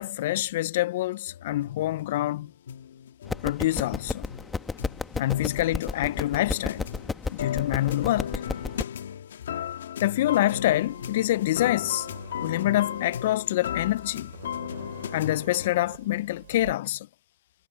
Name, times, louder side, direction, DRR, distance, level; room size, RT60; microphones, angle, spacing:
voice 1, 0.0-2.5 3.4-4.3 5.2-6.8 7.3-8.4 10.0-12.1 12.4-14.3 15.1-17.1, left 15 dB, 45° left, 0.3 m, -26 dB
sound 1, 1.3-15.7, left 9 dB, 75° left, 1.4 m, -36 dB
sound 2, 3.3-8.8, left 4 dB, 5° left, 1.1 m, -33 dB
sound 3, 10.4-16.7, right 11 dB, 60° right, 2.6 m, -48 dB
hypercardioid pair, 160°, 0 cm